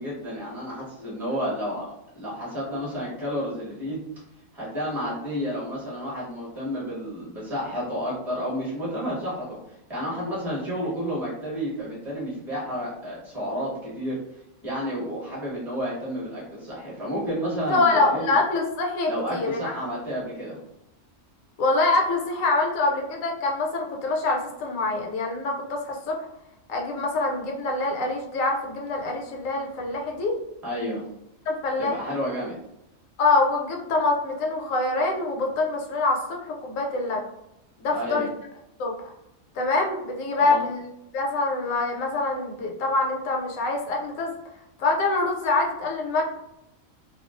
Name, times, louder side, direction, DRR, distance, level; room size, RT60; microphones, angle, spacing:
voice 1, 0.0-1.8 2.1-4.0 4.5-14.2 14.6-18.4 19.1-20.6 30.6-31.0 31.8-32.6 37.9-38.3 40.4-40.6, equal, ahead, -6 dB, 0.8 m, -31 dB
voice 2, 17.7-19.6 21.6-26.2 26.7-30.4 31.5-31.9 33.2-37.2 37.8-38.3 38.8-39.1 39.5-40.9 41.1-44.3 44.8-46.2, left 3 dB, 75° left, 1 dB, 0.9 m, -25 dB
2.4 x 2.2 x 2.4 m, 0.83 s
omnidirectional pair, 1.5 m